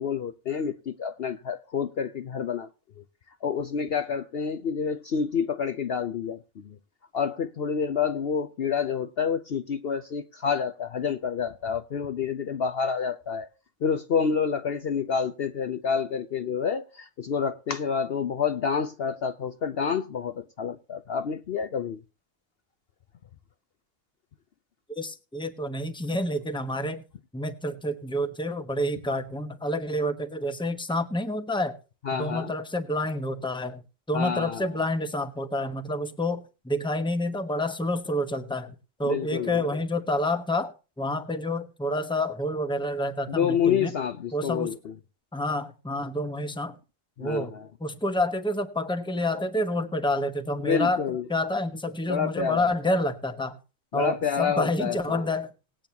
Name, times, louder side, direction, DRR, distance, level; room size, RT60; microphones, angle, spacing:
voice 1, 0.0-2.7 3.0-3.1 3.4-6.8 7.1-13.5 13.8-22.0 32.0-32.5 34.1-34.7 39.0-39.6 43.3-44.9 47.2-47.7 50.6-51.2 52.1-52.7 53.9-55.3, left 6 dB, 55° left, 0.8 m, -28 dB
voice 2, 25.0-27.0 27.3-31.8 32.1-33.8 34.1-40.7 41.0-43.9 44.3-44.8 45.3-46.8 47.2-47.5 47.8-51.0 51.3-53.6 53.9-55.5, left 1 dB, 5° left, 1.0 m, -28 dB
19.5 x 8.8 x 2.9 m
omnidirectional pair, 1.3 m